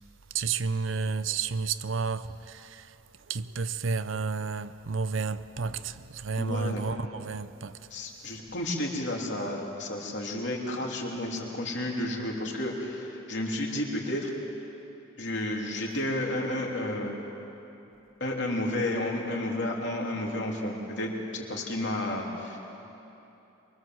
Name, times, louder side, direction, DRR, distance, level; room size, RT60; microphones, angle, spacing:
voice 1, 0.3-3.0 3.3-7.9, right 5 dB, 70° right, 0.7 m, -31 dB
voice 2, 6.4-6.8 7.9-14.3 15.2-17.1 18.2-22.6, left 1 dB, 60° left, 3.5 m, -31 dB
24.0 x 24.0 x 7.8 m
head